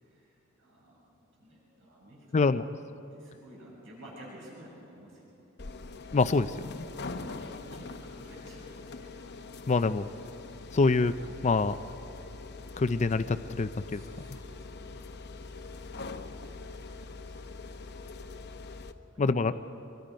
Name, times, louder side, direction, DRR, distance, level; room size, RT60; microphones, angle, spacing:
voice 1, 0.6-1.0 1.4-2.5 3.1-5.2 6.0-6.2 7.0-9.4 13.8-15.1 15.4-17.3 19.1-19.6, equal, 65° right, -5 dB, 6.9 m, -52 dB
voice 2, 2.3-2.6 6.1-6.5 9.7-10.1 10.7-11.1 11.4-11.7 12.8-14.0 19.2-19.5, left 3 dB, 35° left, 11 dB, 0.4 m, -25 dB
sound 1, 5.6-18.9, left 3 dB, 55° left, 0.9 m, -43 dB
26.0 x 23.0 x 5.2 m, 2.9 s
head